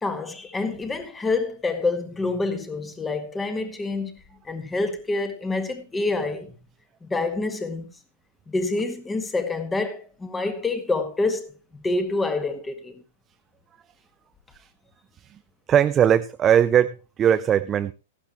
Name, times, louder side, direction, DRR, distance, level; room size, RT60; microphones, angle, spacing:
voice 1, 0.0-4.1 4.5-6.5 7.0-7.9 8.5-13.0, left 3 dB, 10° left, 1.8 m, -27 dB
voice 2, 15.7-17.9, right 9 dB, 25° right, 0.5 m, -19 dB
15.0 x 11.5 x 3.1 m
hypercardioid pair, 120°, 0 cm